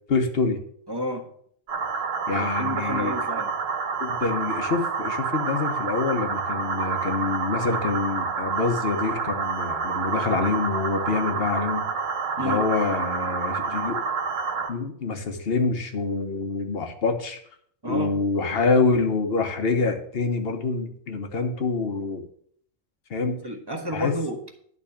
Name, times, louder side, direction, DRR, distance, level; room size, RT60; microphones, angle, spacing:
voice 1, 0.1-0.6 2.3-3.2 4.0-11.8 12.4-14.0 14.7-17.4 17.9-22.2 23.1-23.3 23.9-24.1, left 4 dB, 50° left, 6 dB, 1.3 m, -26 dB
voice 2, 0.9-1.3 2.3-3.5 12.4-12.7 17.8-18.2 23.3-24.4, equal, 20° right, 3 dB, 1.3 m, -31 dB
sound 1, 1.7-14.7, right 5 dB, 75° right, 1.5 m, -28 dB
11.0 x 4.1 x 7.1 m, 0.64 s
omnidirectional pair, 1.3 m